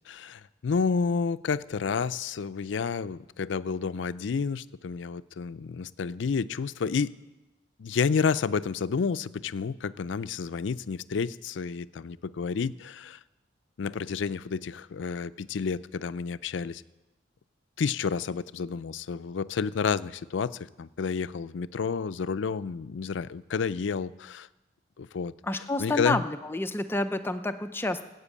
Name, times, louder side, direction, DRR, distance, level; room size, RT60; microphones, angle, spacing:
voice 1, 0.1-7.1 7.8-13.2 13.8-16.8 17.8-24.5 25.0-26.2, left 5 dB, 70° left, 16 dB, 0.4 m, -30 dB
voice 2, 25.4-28.0, left 2 dB, 10° left, 9 dB, 0.5 m, -29 dB
15.0 x 8.1 x 8.4 m, 1.0 s
head